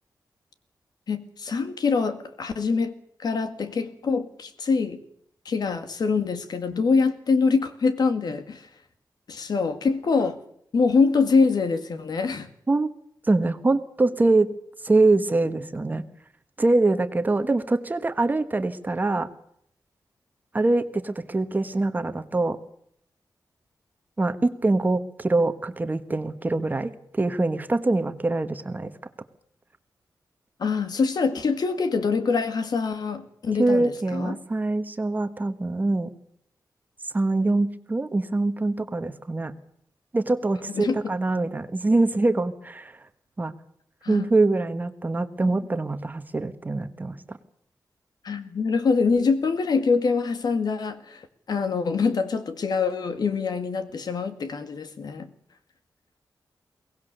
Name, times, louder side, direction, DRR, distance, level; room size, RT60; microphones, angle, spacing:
voice 1, 1.1-2.9 3.2-5.0 5.5-8.7 9.3-10.4 10.7-12.5 30.6-34.4 40.7-41.1 44.0-44.3 48.2-55.3, left 4 dB, 65° left, 2.0 m, -24 dB
voice 2, 13.2-14.5 14.8-16.0 16.6-19.3 20.5-22.6 24.2-29.0 33.6-36.1 37.1-39.6 40.1-43.0 43.4-43.5 44.1-47.4, right 2 dB, 25° right, 1.3 m, -24 dB
23.0 x 18.0 x 6.7 m
wide cardioid pair, 170°, 7 cm